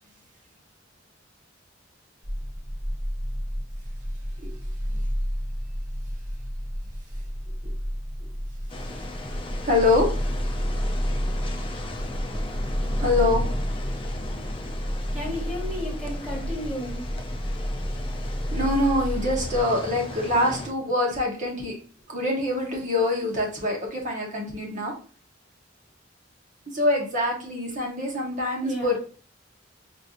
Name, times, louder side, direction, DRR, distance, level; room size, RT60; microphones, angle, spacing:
sound 1, 2.2-19.6, equal, 25° right, 0.6 m, -30 dB
sound 2, 8.7-20.7, left 2 dB, 25° left, 0.5 m, -37 dB
voice 1, 9.6-10.1 12.9-13.4 18.5-21.7 22.1-24.9 26.7-29.0, left 2 dB, 40° right, -1 dB, 1.0 m, -25 dB
voice 2, 15.1-17.0 28.6-29.0, equal, 10° right, -5 dB, 1.6 m, -33 dB
4.3 x 2.7 x 2.5 m, 0.40 s
head